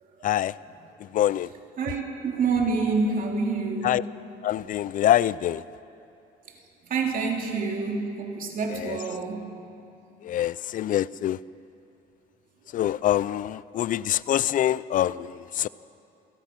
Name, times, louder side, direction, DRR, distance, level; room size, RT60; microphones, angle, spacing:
voice 1, 0.2-0.5 1.1-1.5 3.8-4.0 4.4-5.6 8.8-9.0 10.2-11.4 12.7-15.7, left 12 dB, 50° left, 19 dB, 0.5 m, -25 dB
voice 2, 1.8-4.0 4.9-5.0 6.8-9.5 12.9-13.0, right 4 dB, 55° right, 1 dB, 3.2 m, -27 dB
28.5 x 17.5 x 6.1 m, 2.6 s
cardioid pair, 110°, 17 cm